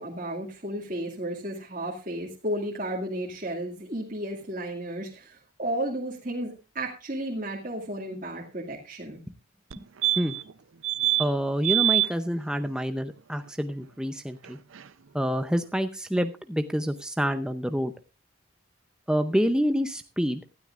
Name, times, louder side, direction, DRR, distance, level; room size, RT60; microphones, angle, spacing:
voice 1, 0.0-9.2, right 1 dB, 40° right, -3 dB, 2.2 m, -33 dB
sound 1, 9.7-9.8 10.0-10.5 10.8-11.3 11.6-12.1 14.5-14.6 14.8-14.9, right 15 dB, 80° right, 0.6 m, -24 dB
voice 2, 11.2-14.6 15.1-17.9 19.1-20.4, equal, 5° right, 8 dB, 0.6 m, -27 dB
18.5 x 12.5 x 2.5 m, 0.31 s
head